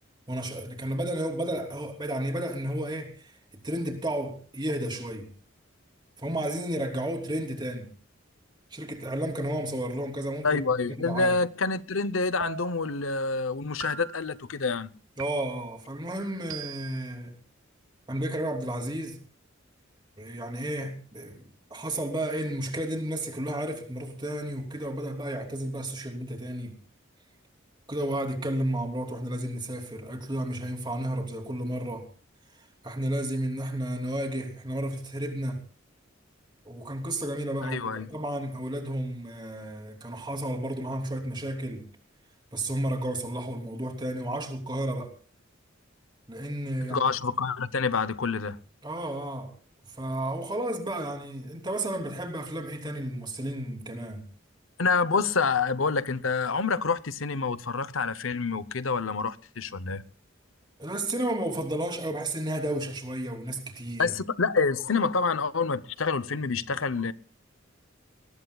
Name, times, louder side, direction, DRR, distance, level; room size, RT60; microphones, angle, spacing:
voice 1, 0.3-3.3 3.6-5.3 6.2-7.9 8.7-10.6 10.9-11.3 15.2-17.3 18.1-19.2 20.2-21.4 21.7-26.8 27.9-32.1 32.8-35.6 36.6-41.9 42.5-45.1 46.3-47.1 48.8-49.5 50.0-54.3 60.8-64.1, right 1 dB, 25° right, 3.3 m, -32 dB
voice 2, 10.4-14.9 37.6-38.1 46.8-48.6 54.8-60.0 64.0-67.1, left 4 dB, 90° left, 0.9 m, -27 dB
sound 1, 12.4-13.0 13.8-14.4 15.2-15.8 16.5-17.1, right 7 dB, 90° right, 1.2 m, -40 dB
21.5 x 19.5 x 2.4 m
head